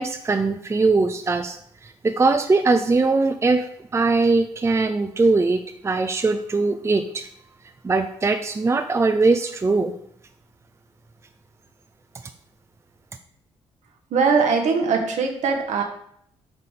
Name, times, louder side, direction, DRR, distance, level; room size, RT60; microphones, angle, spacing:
voice 1, 0.0-1.6 1.8-7.3 7.8-9.9, right 3 dB, 20° right, 8 dB, 0.5 m, -21 dB
voice 2, 14.1-15.8, right 5 dB, 60° right, 3 dB, 1.3 m, -21 dB
8.0 x 4.1 x 4.9 m, 0.69 s
figure-of-eight pair, 40°, 14 cm